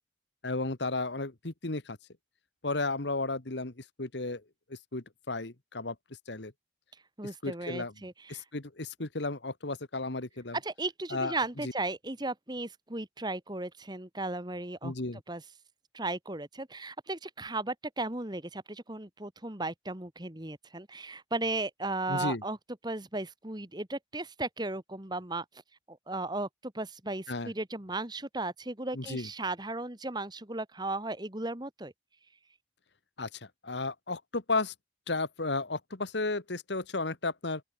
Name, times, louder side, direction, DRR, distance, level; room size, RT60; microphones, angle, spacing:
voice 1, 0.4-2.0 2.6-4.4 4.7-5.9 6.3-6.5 7.4-7.9 8.3-10.6 11.1-11.4 11.6-11.7 14.8-15.2 22.1-22.4 27.3-27.5 28.9-29.3 33.2-34.7 35.1-37.6, left 3 dB, 70° left, 1.7 m, -33 dB
voice 2, 7.2-8.4 10.6-14.9 15.3-15.4 15.9-22.6 22.8-25.5 25.9-31.9, right 2 dB, 25° right, 2.0 m, -36 dB
open air
head